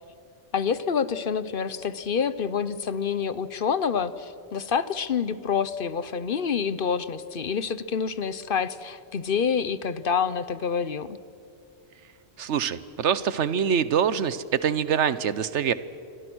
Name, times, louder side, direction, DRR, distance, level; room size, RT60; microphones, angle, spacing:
voice 1, 0.5-11.2, left 6 dB, 55° left, 15 dB, 1.0 m, -27 dB
voice 2, 12.4-15.7, right 8 dB, 90° right, 15 dB, 1.2 m, -24 dB
29.0 x 24.5 x 6.2 m, 2.5 s
omnidirectional pair, 1.2 m